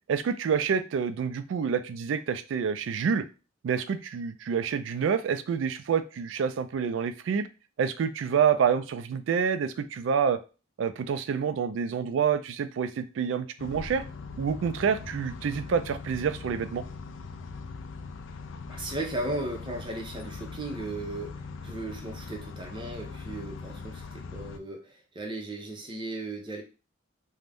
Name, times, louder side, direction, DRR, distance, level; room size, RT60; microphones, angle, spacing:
voice 1, 0.1-3.3 3.6-7.5 7.8-10.4 10.8-14.0 14.4-16.8, right 6 dB, 75° right, 11 dB, 0.3 m, -27 dB
sound 1, 13.6-24.6, left 4 dB, 70° left, 0.3 m, -41 dB
voice 2, 18.7-26.6, right 2 dB, 25° right, 1 dB, 0.7 m, -36 dB
2.5 x 2.1 x 3.3 m, 0.32 s
head